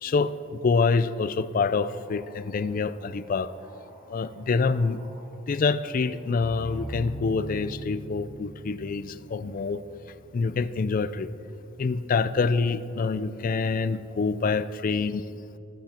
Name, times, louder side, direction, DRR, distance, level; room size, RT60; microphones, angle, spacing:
voice 1, 0.0-3.5 4.1-5.0 5.5-9.8 10.3-11.3 11.8-15.2, left 4 dB, 45° left, 14 dB, 0.4 m, -26 dB
sound 1, 1.5-7.7, equal, 50° right, 2.8 m, -56 dB
sound 2, 6.4-11.5, right 2 dB, 90° left, 1.6 m, -41 dB
15.0 x 8.9 x 4.3 m, 2.8 s
head